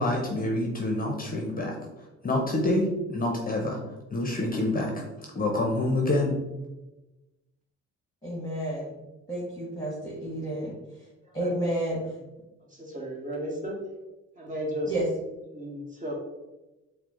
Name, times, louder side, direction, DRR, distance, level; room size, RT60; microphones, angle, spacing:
voice 1, 0.0-1.7 2.2-3.8 4.1-5.0 5.3-6.4, left 1 dB, 30° left, 0 dB, 0.7 m, -27 dB
voice 2, 8.2-8.9 9.3-10.7 11.3-12.0 14.9-15.1, right 1 dB, 10° left, -5 dB, 1.3 m, -30 dB
voice 3, 12.7-13.8 14.4-14.9 15.5-16.1, equal, 25° right, -2 dB, 1.3 m, -34 dB
4.5 x 2.1 x 3.7 m, 1.1 s
cardioid pair, 90°, 30 cm